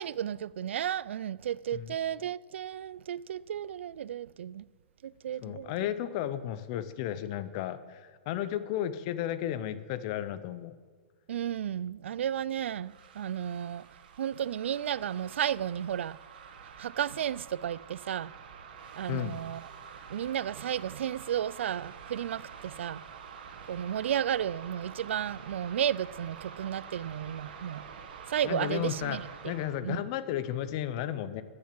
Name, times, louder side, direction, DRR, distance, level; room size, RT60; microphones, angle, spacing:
voice 1, 0.0-4.6 5.0-5.7 11.3-13.8 14.2-16.2 16.8-18.3 19.0-19.6 20.1-23.0 23.7-27.8 28.3-29.2 29.8-30.0, right 10 dB, 80° right, 0.3 m, -33 dB
voice 2, 5.4-10.8 19.1-19.4 28.4-29.2 29.4-31.4, left 11 dB, 25° left, 0.6 m, -33 dB
sound 1, 12.8-29.8, right 6 dB, 45° right, 1.4 m, -48 dB
14.5 x 7.3 x 7.6 m
hypercardioid pair, 180°, 6 cm